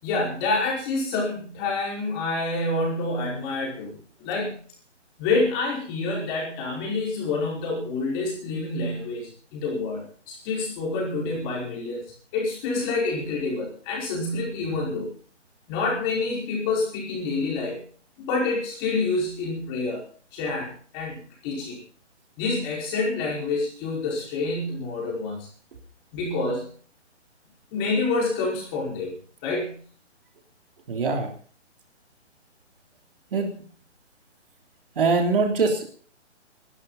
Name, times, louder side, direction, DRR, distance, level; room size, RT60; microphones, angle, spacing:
voice 1, 0.0-4.6 5.2-12.0 12.3-15.1 15.7-17.8 18.2-20.1 20.3-21.8 22.4-25.5 26.1-26.7 27.7-29.8, left 3 dB, 20° left, -2 dB, 5.2 m, -27 dB
voice 2, 30.9-31.3 33.3-33.5 34.9-35.8, right 4 dB, 45° right, 3 dB, 3.3 m, -22 dB
21.0 x 13.0 x 4.2 m, 0.43 s
hypercardioid pair, 170°, 37 cm